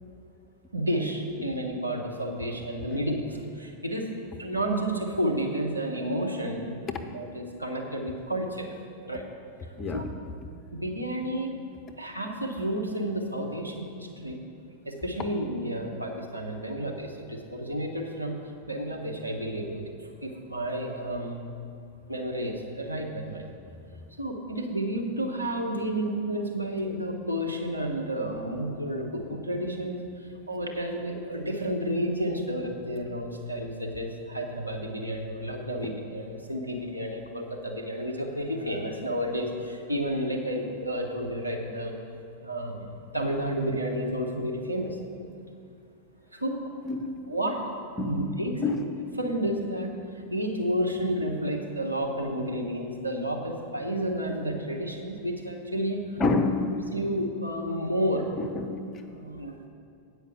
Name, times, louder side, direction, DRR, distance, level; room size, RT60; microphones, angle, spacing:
voice 1, 0.7-4.1 4.4-6.7 7.1-8.7 9.0-9.2 9.9-10.0 10.7-11.5 12.0-14.4 14.8-18.4 18.7-19.8 20.2-21.4 22.1-23.5 24.2-41.9 42.4-45.0 46.3-46.6 47.3-47.6 48.0-48.7 49.2-49.9 50.3-56.0 56.9-58.3 59.1-59.7, equal, 85° right, 0 dB, 1.1 m, -31 dB
voice 2, 9.8-10.1 46.8-47.2 48.0-48.2 48.6-48.8 56.2-56.8 58.4-58.9, left 3 dB, 25° left, 6 dB, 0.8 m, -28 dB
8.7 x 5.1 x 7.8 m, 2.5 s
figure-of-eight pair, 90°, 0 cm